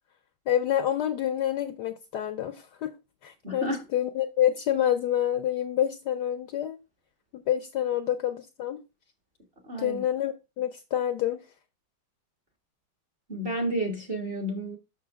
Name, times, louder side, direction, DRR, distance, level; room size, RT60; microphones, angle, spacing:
voice 1, 0.5-2.9 3.2-6.8 7.3-8.8 9.8-11.4, left 11 dB, 70° left, 1.0 m, -27 dB
voice 2, 3.4-3.8 9.6-10.0 13.3-14.8, right 1 dB, 35° right, 1.1 m, -31 dB
6.3 x 6.3 x 3.5 m
omnidirectional pair, 2.2 m